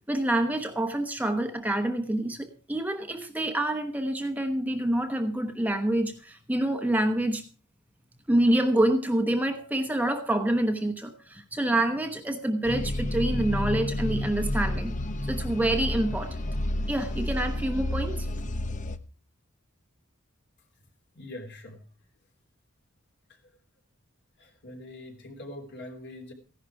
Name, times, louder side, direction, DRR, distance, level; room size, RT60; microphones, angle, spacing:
voice 1, 0.1-7.4 8.3-14.9 15.3-16.5 16.9-18.3, right 1 dB, 10° right, 6 dB, 1.0 m, -27 dB
sound 1, 12.6-19.0, left 1 dB, 35° left, 0.8 m, -30 dB
voice 2, 21.1-21.8 24.4-26.3, left 1 dB, 55° left, 3 dB, 3.4 m, -43 dB
15.5 x 11.5 x 4.7 m, 0.36 s
head